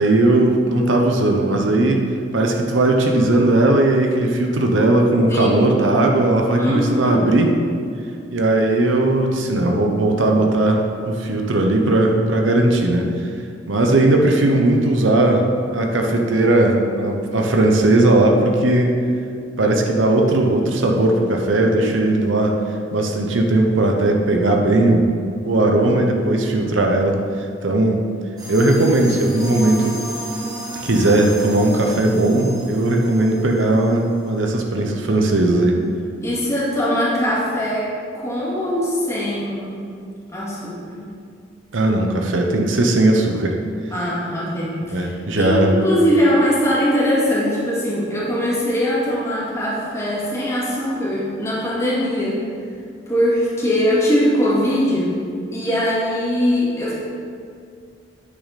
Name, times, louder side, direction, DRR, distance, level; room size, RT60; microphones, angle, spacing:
voice 1, 0.0-2.1 2.3-7.6 8.3-13.1 13.7-15.5 15.7-19.0 19.6-22.6 22.9-25.1 25.4-27.2 27.6-28.0 28.5-30.0 30.7-35.8 41.7-43.5 44.9-45.7, right 2 dB, 85° right, 2 dB, 0.9 m, -17 dB
voice 2, 5.3-5.8 6.6-7.2 36.2-37.9 38.1-39.7 40.3-41.0 43.9-52.4 53.1-55.1 55.5-56.9, equal, 15° left, -7 dB, 2.3 m, -21 dB
sound 1, 28.4-34.7, right 1 dB, 20° right, 1.8 m, -34 dB
9.4 x 6.3 x 4.2 m, 2.3 s
head